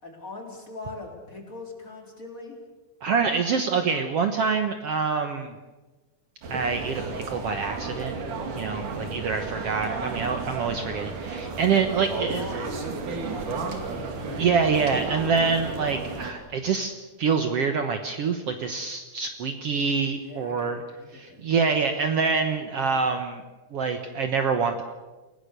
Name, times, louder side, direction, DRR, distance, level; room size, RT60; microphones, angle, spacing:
voice 1, 0.0-2.6 11.4-11.7 12.1-14.4 20.2-21.4, left 2 dB, 25° left, 1 dB, 4.2 m, -42 dB
voice 2, 3.0-5.6 6.5-8.2 8.6-12.5 14.4-16.9 17.2-20.8 21.1-23.4 23.7-24.8, right 5 dB, 60° right, 6 dB, 2.0 m, -26 dB
sound 1, 6.4-16.3, right 4 dB, 85° right, 4.0 m, -33 dB
28.5 x 18.0 x 6.8 m, 1.2 s
omnidirectional pair, 3.5 m